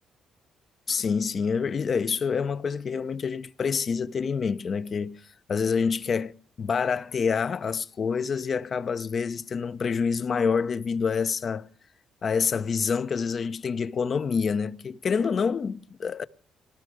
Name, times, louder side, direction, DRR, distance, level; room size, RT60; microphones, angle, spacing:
voice 1, 0.9-5.2 5.5-6.3 6.6-11.7 12.2-16.2, left 6 dB, 50° left, 0.7 m, -27 dB
18.0 x 13.5 x 4.8 m
cardioid pair, 90°, 0 cm